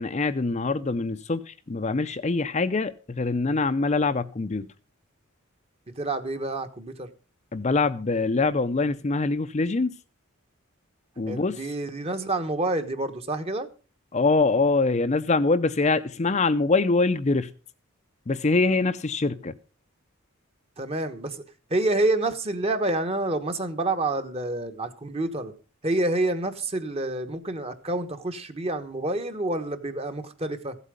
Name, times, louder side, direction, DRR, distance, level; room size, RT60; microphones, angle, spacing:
voice 1, 0.0-4.7 7.5-9.9 11.2-11.6 14.1-17.5 18.3-19.5, left 3 dB, 30° left, 0.5 m, -24 dB
voice 2, 6.0-7.1 11.3-13.7 20.8-21.4 21.7-25.5 25.8-30.8, right 2 dB, 30° right, 1.1 m, -28 dB
15.0 x 8.2 x 5.1 m
head